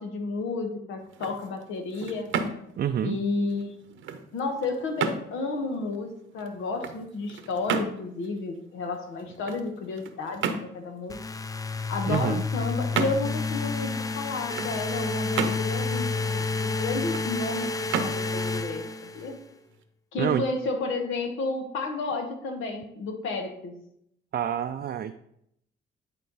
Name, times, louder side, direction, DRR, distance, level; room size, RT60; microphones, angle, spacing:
voice 1, 0.0-2.3 3.0-3.8 4.3-11.2 11.9-19.4 20.1-23.8, left 3 dB, 85° left, 5 dB, 1.4 m, -32 dB
sound 1, 1.0-19.8, right 6 dB, 80° right, 0.9 m, -35 dB
voice 2, 2.8-3.2 12.1-12.4 20.2-20.4 24.3-25.1, right 9 dB, 50° right, 7 dB, 0.5 m, -27 dB
sound 2, 11.1-19.4, left 3 dB, 15° left, 0.4 m, -30 dB
10.5 x 4.5 x 4.0 m, 0.75 s
cardioid pair, 90°, 20 cm